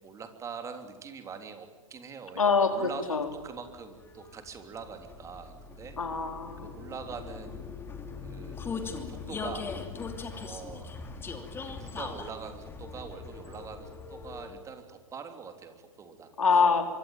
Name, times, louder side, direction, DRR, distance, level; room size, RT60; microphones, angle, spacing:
voice 1, 0.0-6.0 6.6-7.7 8.2-8.6 9.1-9.7 10.4-10.9 11.6-16.3, right 6 dB, 15° right, 7 dB, 3.3 m, -43 dB
voice 2, 2.4-3.3 6.0-6.7 16.4-16.9, left 5 dB, 75° left, 6 dB, 4.3 m, -25 dB
Vehicle, 2.9-14.8, left 5 dB, 15° left, 2.8 m, -41 dB
25.5 x 24.5 x 9.1 m, 1.3 s
figure-of-eight pair, 115°, 17 cm